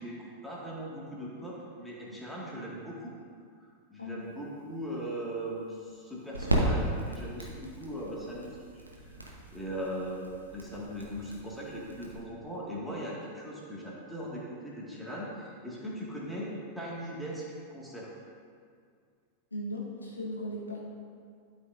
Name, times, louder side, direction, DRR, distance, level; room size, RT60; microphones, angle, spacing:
voice 1, 0.0-3.1 3.6-18.1, equal, ahead, -6 dB, 2.1 m, -39 dB
voice 2, 4.0-4.4 19.5-20.9, left 1 dB, 80° left, -3 dB, 1.4 m, -38 dB
sound 1, 4.2-12.2, right 1 dB, 85° right, 1.1 m, -35 dB
12.0 x 6.1 x 2.7 m, 2.2 s
figure-of-eight pair, 90°, 0 cm